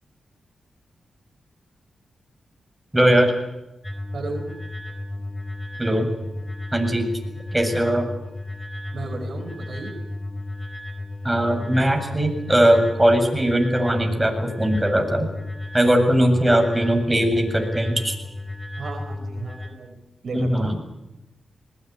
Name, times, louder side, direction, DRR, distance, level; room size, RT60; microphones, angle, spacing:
voice 1, 2.9-3.3 5.8-6.1 6.7-7.1 7.5-8.1 11.2-15.3 15.7-18.2 20.3-20.8, right 1 dB, 15° right, 4 dB, 7.8 m, -20 dB
sound 1, 3.8-19.7, left 2 dB, 20° left, 4.5 m, -33 dB
voice 2, 4.1-4.5 7.7-7.8 8.9-9.9 18.8-20.0 20.2-20.8, right 3 dB, 65° right, 4 dB, 5.3 m, -34 dB
20.5 x 20.5 x 9.8 m, 0.98 s
supercardioid pair, 45°, 0 cm